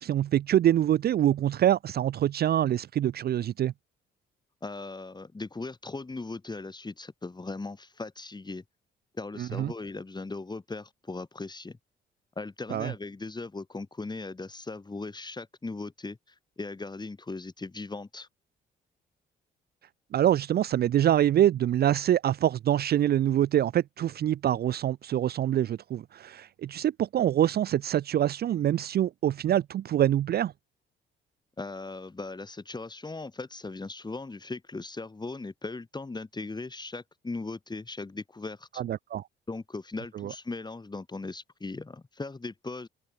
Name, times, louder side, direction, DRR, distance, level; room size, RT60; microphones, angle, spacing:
voice 1, 0.0-3.7 9.4-9.7 12.7-12.9 20.1-30.5 38.8-39.2 40.2-40.3, right 11 dB, 55° right, 0.5 m, -25 dB
voice 2, 4.6-8.6 9.1-11.8 12.4-16.2 16.6-18.3 31.6-38.8 39.5-42.9, left 3 dB, 20° left, 7.3 m, -38 dB
cardioid pair, 90°, 20 cm